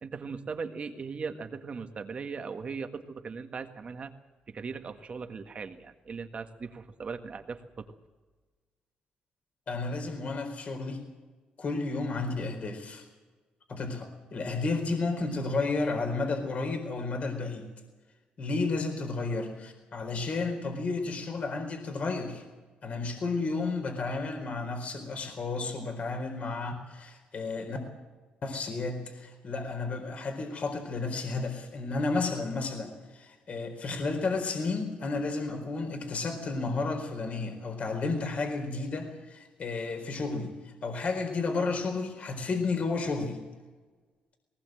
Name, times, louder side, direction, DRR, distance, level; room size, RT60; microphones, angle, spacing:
voice 1, 0.0-4.1 4.5-7.9, right 5 dB, 40° right, 7 dB, 1.7 m, -39 dB
voice 2, 9.7-11.0 11.6-13.1 13.7-17.7 18.4-22.4 22.8-27.8 28.4-43.4, left 3 dB, 50° left, 5 dB, 4.3 m, -32 dB
20.0 x 19.0 x 7.8 m, 1.3 s
cardioid pair, 105°, 3 cm